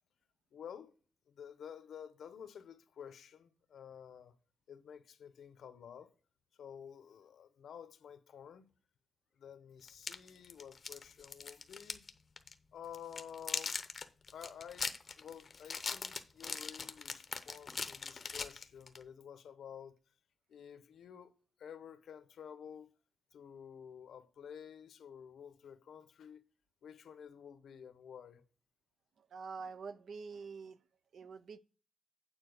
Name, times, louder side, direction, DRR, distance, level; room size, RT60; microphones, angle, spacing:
voice 1, 0.5-0.9 1.3-4.4 4.7-6.1 6.6-8.6 9.4-12.1 12.7-13.8 14.3-20.0 20.5-21.3 21.6-22.9 23.3-26.4 26.8-28.5, left 8 dB, 80° left, 0.9 m, -51 dB
sound 1, 9.9-12.1 12.4-12.5 12.9-19.0, left 5 dB, 40° left, 0.7 m, -40 dB
voice 2, 29.2-30.8 31.1-31.6, right 5 dB, 65° right, 0.6 m, -46 dB
9.1 x 4.2 x 6.5 m
wide cardioid pair, 150°, 0 cm